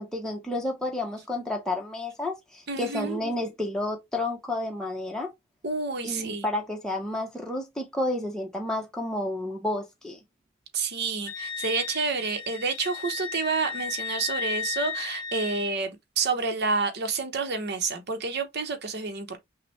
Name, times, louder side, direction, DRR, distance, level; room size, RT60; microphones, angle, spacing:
voice 1, 0.0-5.3 6.0-10.2, left 1 dB, 5° left, 0.7 m, -31 dB
voice 2, 2.7-3.2 5.6-6.4 10.7-19.4, right 4 dB, 55° right, 0.9 m, -29 dB
Wind instrument woodwind instrument, 11.3-15.7, left 6 dB, 75° left, 0.8 m, -35 dB
5.7 x 2.1 x 3.1 m
head